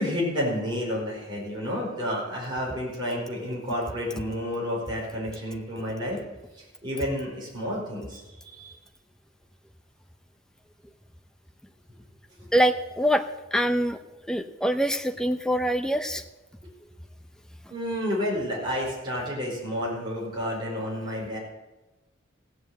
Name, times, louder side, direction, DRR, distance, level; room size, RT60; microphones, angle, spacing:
voice 1, 0.0-6.2 6.5-8.8 17.7-21.4, equal, 25° right, -5 dB, 4.7 m, -30 dB
voice 2, 12.5-13.2 13.5-14.0 14.3-16.2, equal, 5° left, 7 dB, 0.7 m, -24 dB
16.0 x 7.8 x 7.9 m, 1.1 s
head